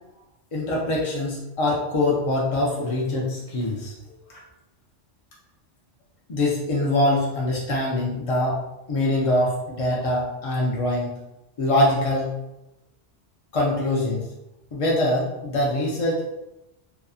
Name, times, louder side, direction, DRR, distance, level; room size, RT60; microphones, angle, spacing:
voice 1, 0.5-4.2 6.3-8.6 8.9-11.2 11.6-12.3 13.5-14.2 14.7-16.3, left 1 dB, 60° left, -3 dB, 0.3 m, -23 dB
2.7 x 2.4 x 2.3 m, 0.94 s
omnidirectional pair, 1.2 m